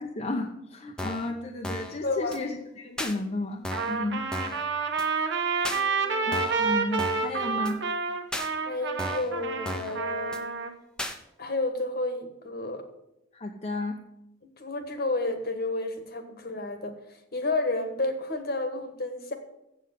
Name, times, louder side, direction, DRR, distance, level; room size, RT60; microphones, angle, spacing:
voice 1, 0.0-4.2 6.3-7.8 13.3-14.0, left 2 dB, 35° left, 1 dB, 0.8 m, -33 dB
sound 1, 1.0-1.3 1.6-2.0 2.3-2.4 3.0-3.1 3.6-4.0 4.3-4.6 5.0-5.1 5.6-5.8 6.3-6.6 7.0-7.3 7.6-7.7 8.3-8.5 9.0-9.3 9.6-10.0 10.3-10.4 11.0-11.2, left 1 dB, 5° left, 0.8 m, -34 dB
voice 2, 2.0-2.4 5.7-6.4 8.6-10.5 11.4-12.9 14.4-19.3, left 2 dB, 50° left, 7 dB, 1.4 m, -31 dB
Trumpet, 3.7-10.7, right 5 dB, 60° right, 1.2 m, -29 dB
7.9 x 7.7 x 8.2 m, 0.85 s
head